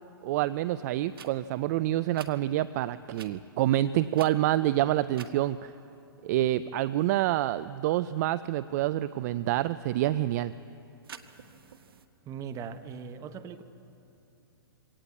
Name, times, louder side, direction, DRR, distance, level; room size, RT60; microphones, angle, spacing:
voice 1, 0.2-5.7 6.2-10.5, right 14 dB, 45° right, 15 dB, 0.5 m, -27 dB
sound 1, 1.1-1.3 2.1-2.3 3.1-3.3 4.1-4.7 5.1-5.3 11.0-12.1, right 8 dB, 70° right, 1.2 m, -47 dB
voice 2, 12.3-13.6, right 7 dB, 25° right, 9 dB, 1.1 m, -39 dB
22.5 x 18.0 x 8.2 m, 2.9 s
hypercardioid pair, 115°, 13 cm